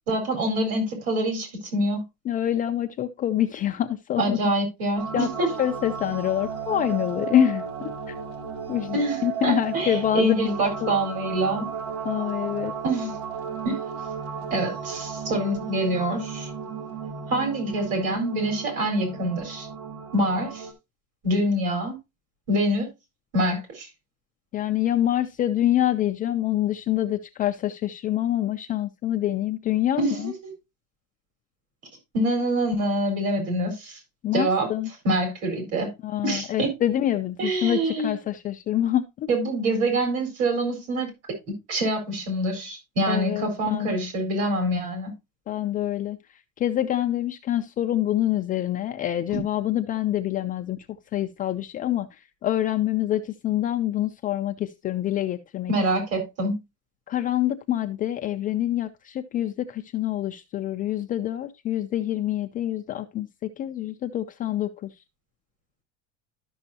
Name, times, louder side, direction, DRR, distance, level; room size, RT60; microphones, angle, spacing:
voice 1, 0.1-2.0 4.2-5.5 8.9-11.7 12.8-13.1 13.6-13.7 14.5-16.5 17.3-19.7 20.1-20.7 21.2-22.0 22.5-22.9 23.3-23.9 30.0-30.5 32.1-34.0 34.3-34.7 35.0-35.9 36.2-36.7 37.4-38.1 39.3-45.1 49.3-49.4 55.7-56.5, right 1 dB, 50° right, 4.3 m, -25 dB
voice 2, 2.3-4.4 5.1-8.2 8.7-10.3 10.8-10.9 12.0-12.7 24.5-30.3 34.2-34.9 36.0-39.3 43.1-43.9 45.5-46.2 46.6-50.8 51.1-52.1 52.4-55.7 57.1-64.9, left 12 dB, 25° left, 0.4 m, -26 dB
sound 1, 5.0-20.7, right 6 dB, 75° right, 2.2 m, -34 dB
12.5 x 6.2 x 2.7 m
cardioid pair, 165°, 32 cm